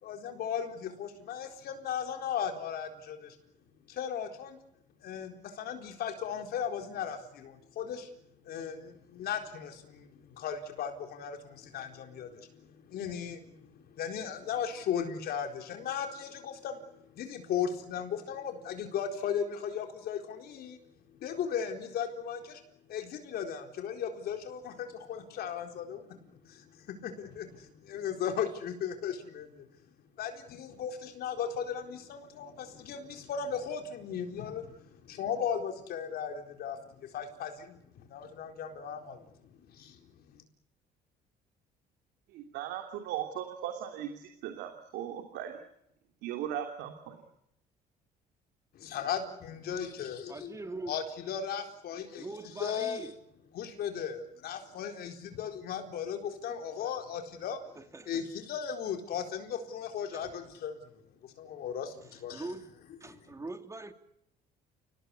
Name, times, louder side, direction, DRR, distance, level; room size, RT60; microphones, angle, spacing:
voice 1, 0.0-3.4 3.9-4.6 5.0-8.1 8.4-20.8 21.1-22.6 22.9-29.7 30.2-40.4 48.7-50.6 50.9-52.3 52.6-53.1 53.5-57.6 58.1-61.9 62.2-62.4 63.0-63.2, left 8 dB, 65° left, 4 dB, 4.2 m, -37 dB
voice 2, 42.3-45.6 46.2-47.2, right 10 dB, 90° right, 4 dB, 3.1 m, -38 dB
voice 3, 50.3-51.0 52.2-53.1 57.7-58.3 60.1-60.2 62.3-62.6 63.0-63.9, right 2 dB, 20° right, 7 dB, 2.9 m, -42 dB
30.0 x 18.5 x 8.4 m, 0.77 s
cardioid pair, 110°, 17 cm